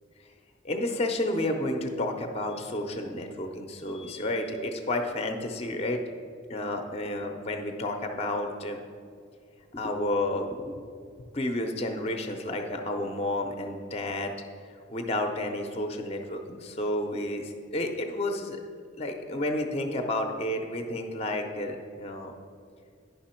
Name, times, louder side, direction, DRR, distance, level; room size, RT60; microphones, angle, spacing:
voice 1, 0.6-6.0 6.5-8.8 9.7-10.9 11.3-14.4 14.9-18.6 19.0-22.3, left 1 dB, 30° left, 5 dB, 0.5 m, -31 dB
10.0 x 5.5 x 4.3 m, 2.2 s
head